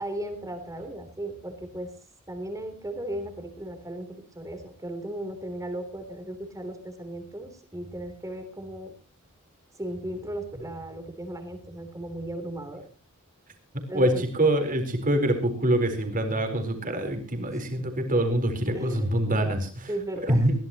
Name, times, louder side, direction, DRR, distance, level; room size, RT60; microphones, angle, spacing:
voice 1, 0.0-1.9 2.3-8.9 9.7-12.9 13.9-14.3 17.5-17.7 18.7-19.1 19.4-19.5 19.9-20.5, right 1 dB, 15° right, 7 dB, 3.4 m, -36 dB
voice 2, 13.9-19.9 20.3-20.5, right 1 dB, 40° right, 6 dB, 4.1 m, -25 dB
21.5 x 16.5 x 3.0 m, 0.37 s
head